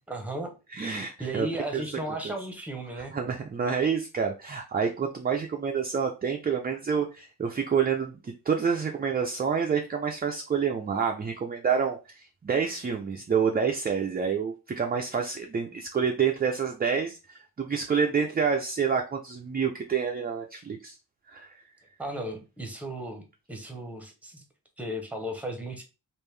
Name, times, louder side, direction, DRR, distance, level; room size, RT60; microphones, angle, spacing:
voice 1, 0.1-0.5 1.2-3.2 22.0-23.2 23.5-24.4 24.8-25.8, right 1 dB, 5° right, 3 dB, 0.7 m, -35 dB
voice 2, 0.7-1.5 1.7-1.8 2.2-2.3 2.9-20.9 21.3-21.5, right 6 dB, 25° right, 2 dB, 0.3 m, -28 dB
3.5 x 2.5 x 3.2 m, 0.29 s
wide cardioid pair, 140°, 39 cm